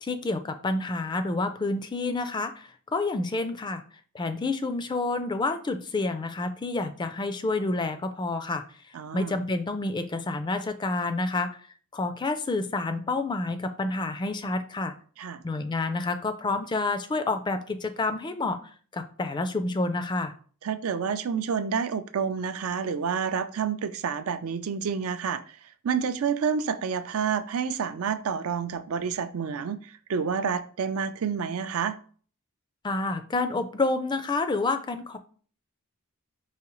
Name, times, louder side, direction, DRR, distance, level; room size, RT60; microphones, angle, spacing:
voice 1, 0.0-3.8 4.1-8.6 9.1-11.5 11.9-14.9 15.4-18.6 18.9-20.3 32.8-35.2, left 3 dB, 20° left, 9 dB, 0.3 m, -29 dB
voice 2, 8.9-9.3 15.2-15.4 20.6-31.9, right 6 dB, 80° right, 10 dB, 0.4 m, -29 dB
4.8 x 3.1 x 3.0 m, 0.43 s
head